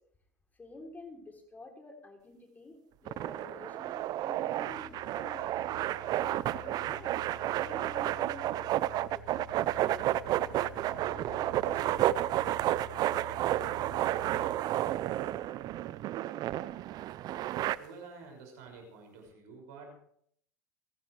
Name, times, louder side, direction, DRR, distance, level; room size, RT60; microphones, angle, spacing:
voice 1, 0.6-5.7 6.1-10.7 11.0-12.4, left 2 dB, 20° left, 2 dB, 3.3 m, -50 dB
sound 1, 3.1-17.8, right 13 dB, 45° right, 0.6 m, -31 dB
sound 2, 4.6-14.6, right 1 dB, 85° right, 1.9 m, -49 dB
voice 2, 17.8-20.0, right 4 dB, 65° right, 2 dB, 6.2 m, -49 dB
29.0 x 10.5 x 3.3 m, 0.67 s
hypercardioid pair, 95°, 9 cm